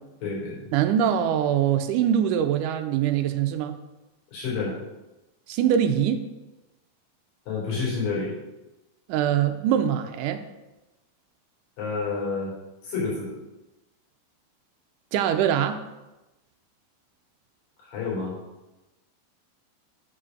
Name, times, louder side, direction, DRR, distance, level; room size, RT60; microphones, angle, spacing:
voice 1, 0.2-0.7 4.3-4.8 7.5-8.3 11.8-12.5 12.8-13.3 17.8-18.4, left 4 dB, 70° left, -5 dB, 4.9 m, -29 dB
voice 2, 0.7-3.8 5.5-6.2 9.1-10.4 15.1-15.8, right 9 dB, 85° right, 7 dB, 1.9 m, -23 dB
7.9 x 5.0 x 6.2 m, 1.0 s
omnidirectional pair, 4.1 m